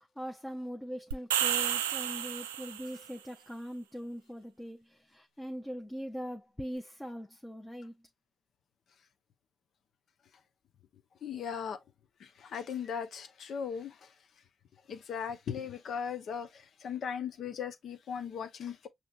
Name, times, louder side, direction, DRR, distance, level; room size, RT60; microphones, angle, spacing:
voice 1, 0.2-8.0, equal, 10° left, 0.8 m, -41 dB
sound 1, 1.1-3.0, right 10 dB, 85° right, 0.4 m, -31 dB
voice 2, 11.2-11.8 12.4-13.9 14.9-16.5 16.8-18.9, left 7 dB, 55° left, 0.7 m, -37 dB
6.4 x 2.9 x 2.4 m
hypercardioid pair, 45°, 0 cm